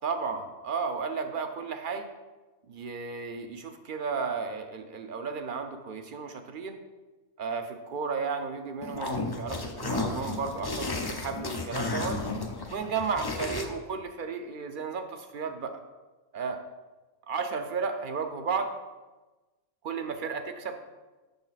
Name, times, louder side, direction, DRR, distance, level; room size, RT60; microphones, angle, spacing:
voice 1, 0.0-2.1 2.7-6.8 7.4-12.2 12.7-15.8 16.3-16.6 17.3-18.7 19.8-20.8, right 5 dB, 50° right, 7 dB, 0.7 m, -33 dB
sound 1, 8.8-13.6, left 3 dB, 35° left, 0.4 m, -33 dB
6.9 x 6.4 x 4.1 m, 1.2 s
omnidirectional pair, 1.3 m